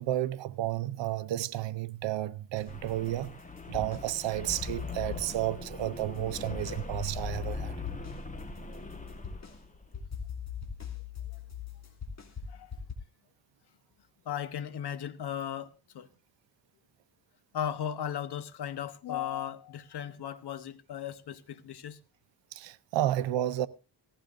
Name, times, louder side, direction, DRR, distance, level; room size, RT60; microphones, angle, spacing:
voice 1, 0.0-3.3 3.7-7.8 22.5-23.7, right 14 dB, 90° right, 0.7 m, -32 dB
sound 1, 2.6-4.1 4.4-6.8 7.2-12.9, left 7 dB, 40° left, 2.7 m, -40 dB
sound 2, 2.7-9.9, left 3 dB, 20° left, 1.5 m, -41 dB
voice 2, 14.2-16.1 17.5-22.0, left 9 dB, 65° left, 1.2 m, -36 dB
18.0 x 15.5 x 2.6 m
cardioid pair, 120°, 43 cm